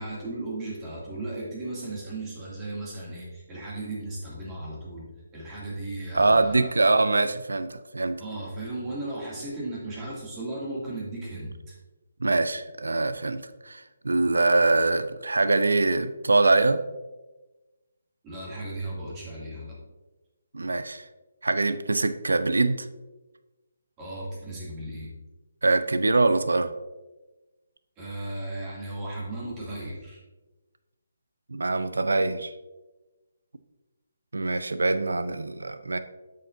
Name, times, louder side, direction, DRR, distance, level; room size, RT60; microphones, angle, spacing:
voice 1, 0.0-6.7 8.2-11.8 18.2-19.9 24.0-25.3 28.0-30.2, right 2 dB, 20° right, -6 dB, 2.4 m, -36 dB
voice 2, 6.1-8.2 12.2-16.8 20.5-21.1 21.4-22.9 25.6-26.7 31.5-32.5 34.3-36.0, right 3 dB, 90° right, 11 dB, 0.5 m, -23 dB
8.1 x 6.5 x 2.6 m, 1.1 s
hypercardioid pair, 155°, 0 cm